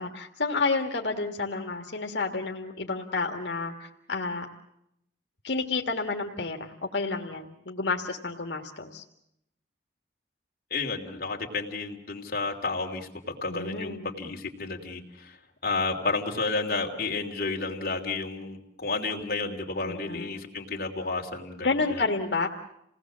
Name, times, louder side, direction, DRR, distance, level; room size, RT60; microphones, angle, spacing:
voice 1, 0.0-4.5 5.4-9.0 13.5-14.1 19.8-20.3 21.6-22.5, left 3 dB, 80° left, 2 dB, 1.7 m, -30 dB
voice 2, 10.7-15.4 15.6-22.0, left 3 dB, 55° left, 0 dB, 3.0 m, -31 dB
28.0 x 19.0 x 7.4 m, 0.77 s
head